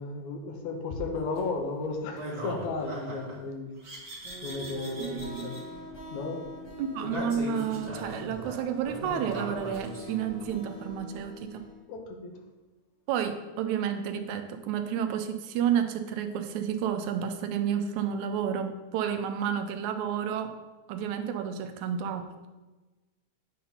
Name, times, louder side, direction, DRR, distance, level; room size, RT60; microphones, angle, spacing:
voice 1, 0.0-3.8 4.4-5.6 6.1-6.4 11.9-12.4, left 3 dB, 80° left, 3 dB, 2.0 m, -34 dB
sound 1, 1.1-1.4 2.2-3.4 3.8-5.6 7.0-10.5, right 1 dB, 30° right, 1.5 m, -39 dB
sound 2, 4.2-11.8, left 1 dB, 65° left, 3.7 m, -44 dB
voice 2, 5.0-5.6 6.8-11.7 13.1-20.6 20.9-22.5, right 8 dB, 90° right, 8 dB, 2.0 m, -31 dB
8.4 x 2.9 x 5.4 m, 1.2 s
omnidirectional pair, 3.3 m